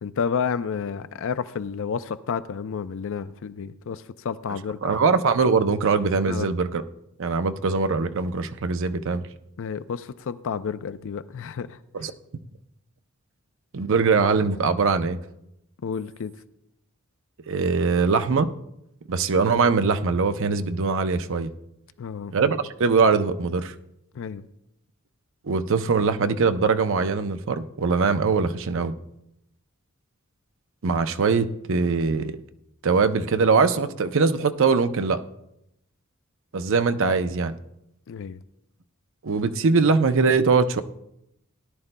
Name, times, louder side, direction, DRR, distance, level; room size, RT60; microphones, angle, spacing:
voice 1, 0.0-4.8 6.3-6.5 9.6-11.8 15.8-16.3 22.0-22.3 24.1-24.5 38.1-38.4, left 6 dB, 65° left, 14 dB, 0.4 m, -30 dB
voice 2, 4.8-6.8 7.2-9.3 11.9-12.1 13.7-15.2 17.5-18.5 19.1-21.5 22.3-23.7 25.4-28.9 30.8-32.3 32.8-35.2 36.5-37.6 39.2-40.8, right 4 dB, 65° right, 9 dB, 0.6 m, -22 dB
18.0 x 11.0 x 2.2 m, 0.83 s
head